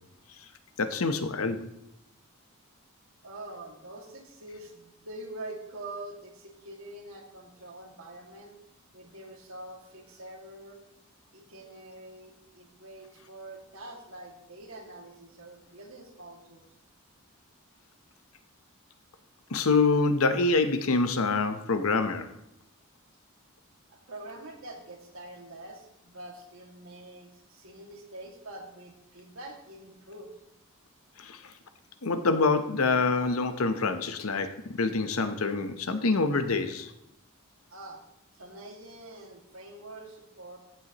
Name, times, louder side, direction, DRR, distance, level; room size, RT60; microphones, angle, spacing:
voice 1, 0.8-1.7 19.5-22.3 31.2-31.4 32.0-36.9, left 3 dB, 75° left, 9 dB, 0.8 m, -26 dB
voice 2, 3.2-8.6 8.9-10.8 11.3-16.6 23.9-30.3 37.7-38.0 38.3-40.6, right 1 dB, 70° right, 1 dB, 2.1 m, -45 dB
14.5 x 7.9 x 3.0 m, 0.82 s
head